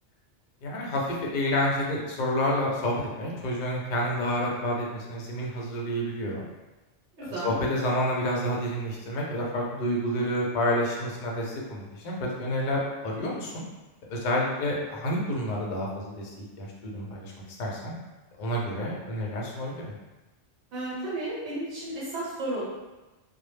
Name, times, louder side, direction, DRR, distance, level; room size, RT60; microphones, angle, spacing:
voice 1, 0.6-6.4 7.2-13.6 14.1-17.3 17.6-17.9 18.4-19.9, left 1 dB, 55° left, -2 dB, 0.6 m, -29 dB
voice 2, 7.2-7.5 20.7-22.6, right 2 dB, 75° right, -7 dB, 0.9 m, -33 dB
2.0 x 2.0 x 3.1 m, 1.1 s
omnidirectional pair, 1.2 m